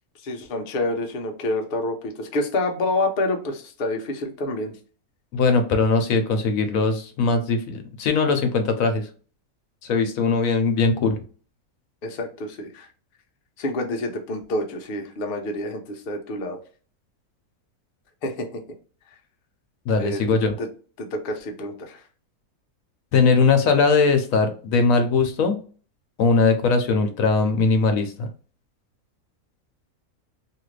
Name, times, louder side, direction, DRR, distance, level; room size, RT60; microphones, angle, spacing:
voice 1, 0.2-4.8 12.0-12.9 13.6-16.6 18.2-18.5 20.0-20.2 20.6-20.7 21.0-22.0, left 2 dB, 55° left, 3 dB, 0.6 m, -28 dB
voice 2, 5.3-9.1 9.8-11.2 19.9-20.5 23.1-25.6 26.2-28.3, left 4 dB, 70° left, 7 dB, 1.0 m, -20 dB
2.8 x 2.4 x 3.1 m, 0.38 s
omnidirectional pair, 1.6 m